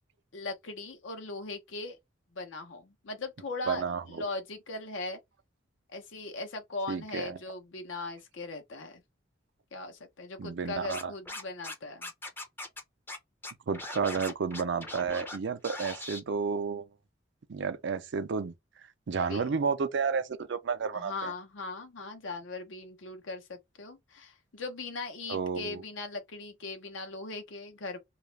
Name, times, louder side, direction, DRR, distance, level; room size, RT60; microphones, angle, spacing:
voice 1, 0.3-2.0 2.3-5.2 5.9-9.0 9.7-12.1 19.3-19.5 20.9-28.0, left 3 dB, 80° left, 0.7 m, -39 dB
voice 2, 3.7-4.2 6.9-7.4 10.4-11.1 13.7-16.8 17.5-18.5 19.1-21.3 25.3-25.8, right 5 dB, 65° right, 0.4 m, -31 dB
Scratching (performance technique), 10.9-11.7 12.0-12.8 13.1-13.2 13.4-15.4 15.6-16.2, left 2 dB, 10° left, 0.5 m, -40 dB
2.4 x 2.0 x 3.1 m
head